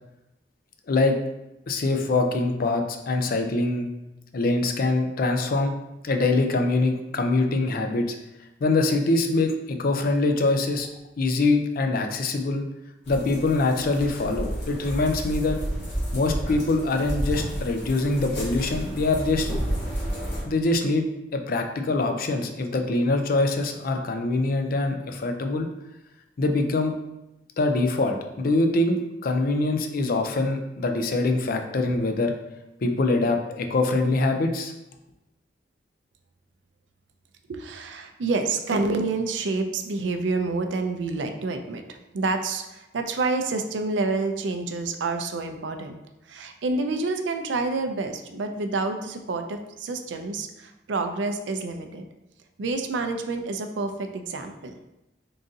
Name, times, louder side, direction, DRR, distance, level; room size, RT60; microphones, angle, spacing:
voice 1, 1.7-3.9 4.3-5.7 6.0-8.2 8.6-10.9 11.2-12.6 13.1-15.6 16.1-19.5 20.4-21.0 21.3-25.7 26.4-26.9 27.6-32.3 32.8-34.7, left 2 dB, 55° left, 5 dB, 0.4 m, -24 dB
sound 1, 13.0-20.4, equal, 75° left, 1.4 m, -31 dB
voice 2, 37.5-46.0 46.3-52.0 52.6-54.7, right 3 dB, 90° right, 6 dB, 0.4 m, -28 dB
3.9 x 2.6 x 3.7 m, 0.92 s
head